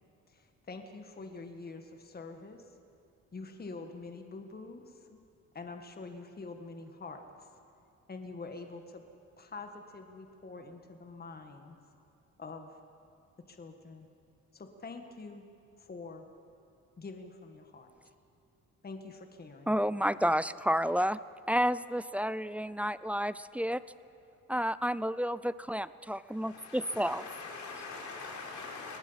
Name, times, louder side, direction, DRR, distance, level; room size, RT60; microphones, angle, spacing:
voice 1, 0.3-2.7 3.3-5.2 5.5-7.5 8.1-9.0 9.4-11.8 12.4-12.8 13.4-14.1 14.5-15.5 15.8-16.3 17.0-17.9 18.8-19.8, left 3 dB, 30° left, 5 dB, 1.7 m, -46 dB
voice 2, 19.7-21.2 21.5-23.8 24.5-27.2, equal, 5° right, 16 dB, 0.4 m, -30 dB
voice 3, 26.2-29.0, left 4 dB, 65° left, 0 dB, 4.4 m, -43 dB
23.5 x 19.0 x 5.8 m, 2.6 s
cardioid pair, 90°, 30 cm